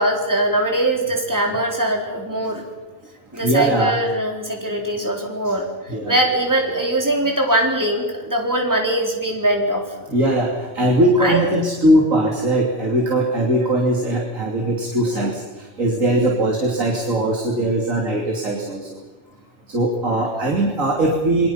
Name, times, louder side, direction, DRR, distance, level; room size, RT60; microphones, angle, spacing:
voice 1, 0.0-2.7 3.3-9.9 11.2-11.4 13.6-13.7 15.0-15.3, right 1 dB, 15° right, 1 dB, 4.1 m, -22 dB
voice 2, 3.3-4.0 4.7-4.8 5.0-5.1 5.4-5.5 5.9-6.2 10.1-15.4 15.8-19.0 19.7-21.5, right 1 dB, 85° right, -1 dB, 3.3 m, -20 dB
28.5 x 23.0 x 5.7 m, 1.2 s
omnidirectional pair, 1.4 m